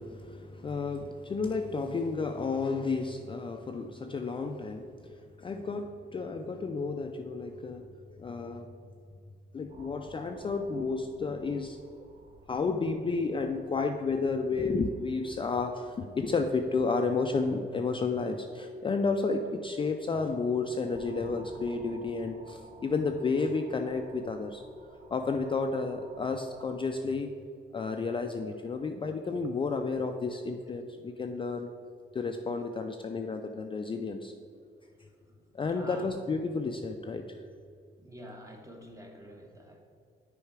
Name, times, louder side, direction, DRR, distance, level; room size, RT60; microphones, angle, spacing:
voice 1, 0.0-7.9 8.2-8.7 9.5-11.8 12.5-24.6 25.1-27.3 27.7-31.7 32.1-34.3 35.5-37.4, left 4 dB, 25° left, 5 dB, 0.4 m, -32 dB
sound 1, 9.7-26.9, right 2 dB, 35° right, 0.9 m, -56 dB
voice 2, 34.8-36.4 38.0-39.8, equal, 15° right, 2 dB, 1.1 m, -49 dB
6.5 x 4.6 x 4.7 m, 2.4 s
cardioid pair, 90°, 20 cm